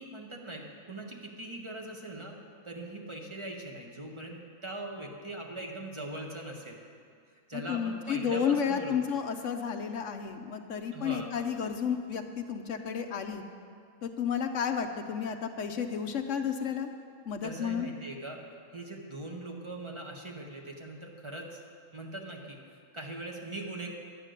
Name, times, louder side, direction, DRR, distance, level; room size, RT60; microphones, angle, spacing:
voice 1, 0.0-2.4 2.6-6.8 7.5-8.9 10.9-11.3 17.4-18.4 18.7-21.6 21.9-23.9, right 2 dB, 20° right, 0 dB, 1.3 m, -41 dB
voice 2, 7.5-13.4 14.0-16.9 17.3-17.9, left 7 dB, 60° left, 6 dB, 0.9 m, -32 dB
12.0 x 9.8 x 6.5 m, 2.3 s
omnidirectional pair, 1.6 m